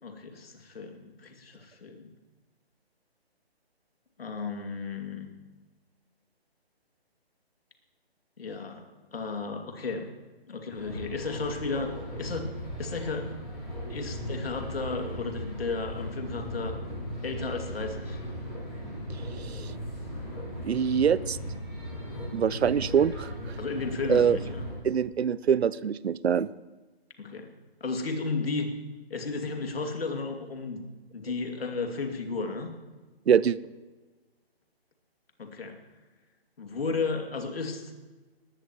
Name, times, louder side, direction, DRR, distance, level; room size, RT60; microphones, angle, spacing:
voice 1, 0.0-2.1 4.2-5.3 8.4-8.8 9.1-10.0 10.5-12.5 12.8-13.3 13.9-16.7 17.2-18.2 23.6-24.4 27.2-27.5 27.8-28.7 29.1-30.8 31.1-32.7 35.4-35.8 36.6-37.8, left 4 dB, 65° left, 3 dB, 2.6 m, -33 dB
sound 1, 10.7-24.7, equal, ahead, 0.4 m, -37 dB
voice 2, 19.4-19.7 20.6-21.4 22.3-23.6 24.1-24.4 24.8-26.5 33.3-33.6, right 8 dB, 80° right, 19 dB, 0.6 m, -24 dB
19.5 x 16.5 x 3.1 m, 1.2 s
hypercardioid pair, 155°, 31 cm